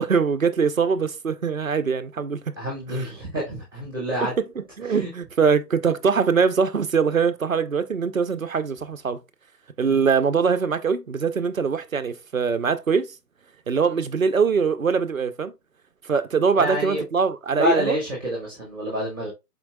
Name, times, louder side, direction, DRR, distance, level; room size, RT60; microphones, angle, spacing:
voice 1, 0.0-2.5 2.9-3.0 4.6-9.2 9.8-13.1 13.7-15.5 16.0-18.0, right 5 dB, 55° right, 0.5 m, -22 dB
voice 2, 2.6-4.4 4.9-5.1 9.8-10.0 16.5-17.0 17.5-19.3, equal, 15° right, 1.0 m, -27 dB
4.3 x 4.3 x 2.5 m
figure-of-eight pair, 150°, 50 cm